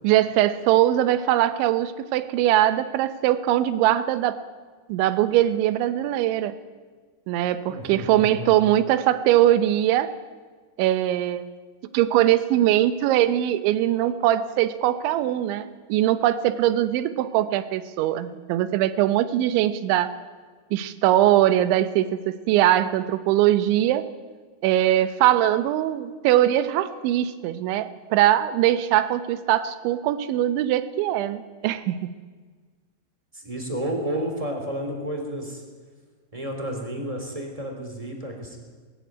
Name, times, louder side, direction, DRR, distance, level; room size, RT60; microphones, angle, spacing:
voice 1, 0.0-4.4 4.9-6.6 7.3-10.1 10.8-11.5 11.9-20.1 20.7-24.1 24.6-32.1, right 13 dB, 90° right, 13 dB, 3.3 m, -21 dB
voice 2, 7.7-8.5 33.3-35.6 36.3-38.6, right 1 dB, 10° right, 2 dB, 2.8 m, -31 dB
21.0 x 14.0 x 9.5 m, 1.5 s
omnidirectional pair, 5.2 m